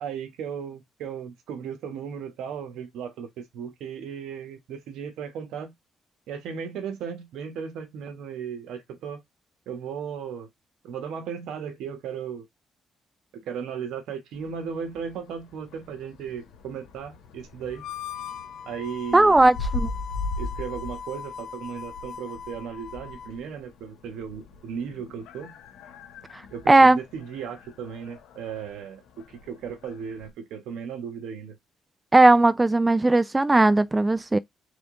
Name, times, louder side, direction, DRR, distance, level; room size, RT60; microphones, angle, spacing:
voice 1, 0.0-5.7 6.3-9.2 9.7-10.5 10.8-12.4 13.3-17.8 18.7-19.4 20.4-25.5 26.5-31.6, right 7 dB, 85° right, 1.1 m, -36 dB
sound 1, 14.3-30.3, left 3 dB, 85° left, 1.1 m, -40 dB
Harmonica, 17.7-23.4, left 8 dB, 70° left, 0.7 m, -40 dB
voice 2, 19.1-19.9 26.3-26.4 26.7-27.0 32.1-34.4, right 2 dB, 15° right, 0.3 m, -17 dB
3.6 x 3.5 x 3.6 m
cardioid pair, 90°, 0 cm